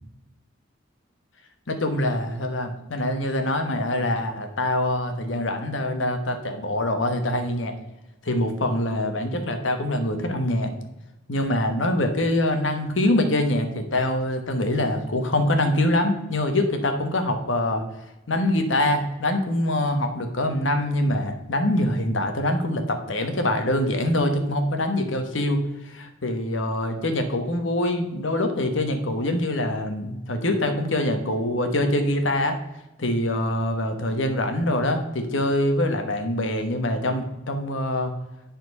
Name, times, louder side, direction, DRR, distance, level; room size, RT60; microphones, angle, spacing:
voice 1, 1.7-7.7 8.2-10.7 11.3-17.8 18.3-32.6 33.0-38.1, left 1 dB, 70° left, 6 dB, 1.2 m, -24 dB
9.7 x 4.3 x 5.4 m, 0.96 s
head